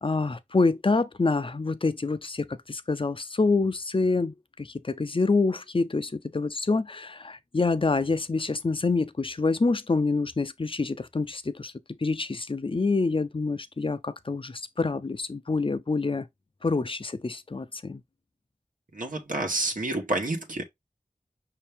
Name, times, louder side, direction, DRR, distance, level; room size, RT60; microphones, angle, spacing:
voice 1, 0.0-11.7 12.0-16.3 16.6-18.0, left 3 dB, 40° left, 0.5 m, -27 dB
voice 2, 18.9-20.6, right 2 dB, 80° right, 1.1 m, -29 dB
5.7 x 2.8 x 3.4 m
wide cardioid pair, 45°, 14 cm